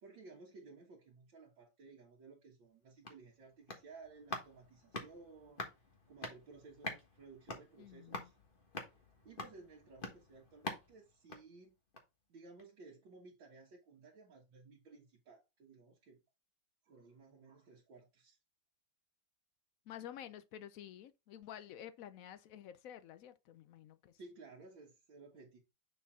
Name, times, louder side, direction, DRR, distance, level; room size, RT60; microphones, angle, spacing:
voice 1, 0.0-5.7 6.1-8.3 8.9-11.7 12.3-16.2 16.8-18.4 24.2-25.6, right 3 dB, 80° right, 2.1 m, -57 dB
sound 1, 2.7-12.2 12.6-12.7, left 2 dB, 30° left, 1.4 m, -48 dB
voice 2, 7.8-8.3 19.9-24.2, left 10 dB, 80° left, 0.7 m, -51 dB
6.7 x 4.4 x 3.6 m
omnidirectional pair, 2.0 m